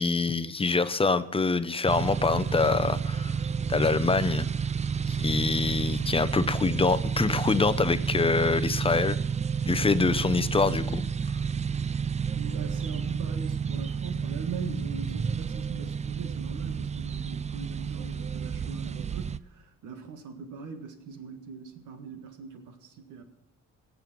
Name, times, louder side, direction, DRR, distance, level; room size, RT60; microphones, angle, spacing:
voice 1, 0.0-3.3 3.7-4.5 5.1-9.2 9.7-11.0, left 4 dB, 20° left, 12 dB, 0.7 m, -25 dB
sound 1, 1.9-19.4, right 6 dB, 25° right, 0.4 m, -30 dB
voice 2, 12.3-23.2, right 5 dB, 80° right, 6 dB, 1.8 m, -41 dB
18.0 x 6.9 x 6.1 m, 0.94 s
cardioid pair, 90°, 30 cm